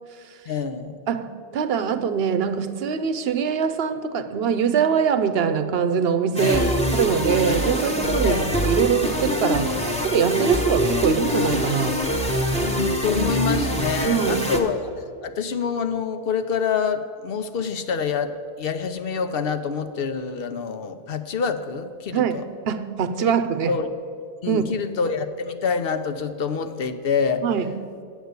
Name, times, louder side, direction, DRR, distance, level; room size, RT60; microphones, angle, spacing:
voice 1, 0.5-1.0 6.4-6.8 8.2-8.5 12.6-22.4 23.7-23.9 24.4-27.4, left 6 dB, 65° left, 0.9 m, -26 dB
voice 2, 1.1-12.0 14.0-14.5 22.1-23.7 24.5-24.6 27.4-27.7, right 7 dB, 75° right, 0.9 m, -23 dB
sound 1, 6.4-14.6, equal, 5° left, 1.0 m, -24 dB
8.1 x 8.1 x 8.0 m
omnidirectional pair, 1.1 m